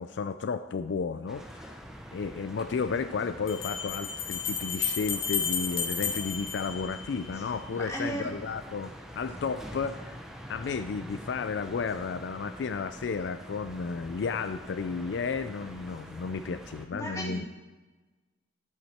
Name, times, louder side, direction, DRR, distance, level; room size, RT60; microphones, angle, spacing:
voice 1, 0.0-1.8 2.1-10.2 10.5-17.5, left 5 dB, 65° left, 11 dB, 0.4 m, -33 dB
sound 1, 1.3-16.9, equal, ahead, 0.8 m, -45 dB
sound 2, 1.8-1.9 3.5-7.4, left 6 dB, 90° left, 1.9 m, -32 dB
voice 2, 7.7-8.3 16.9-17.5, right 1 dB, 15° left, -2 dB, 1.8 m, -35 dB
12.5 x 8.4 x 4.4 m, 1.2 s
head